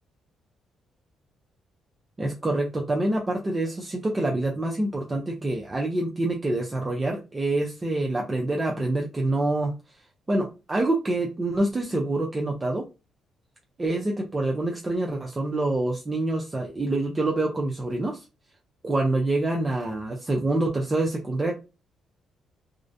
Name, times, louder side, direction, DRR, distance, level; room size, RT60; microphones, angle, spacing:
voice 1, 2.2-9.7 10.3-12.8 13.8-18.3 18.8-21.5, right 2 dB, 25° right, 0 dB, 0.4 m, -26 dB
2.4 x 2.0 x 2.5 m, 0.29 s
cardioid pair, 90°, 0 cm